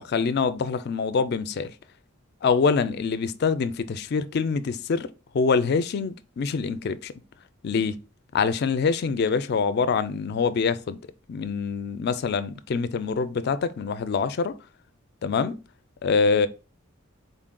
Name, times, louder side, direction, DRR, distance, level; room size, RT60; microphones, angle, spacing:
voice 1, 0.0-1.7 2.4-5.1 5.3-7.1 7.6-8.0 8.3-11.0 11.3-14.6 15.2-15.6 16.0-16.5, left 5 dB, 50° left, 0.3 m, -25 dB
3.9 x 3.7 x 2.2 m
head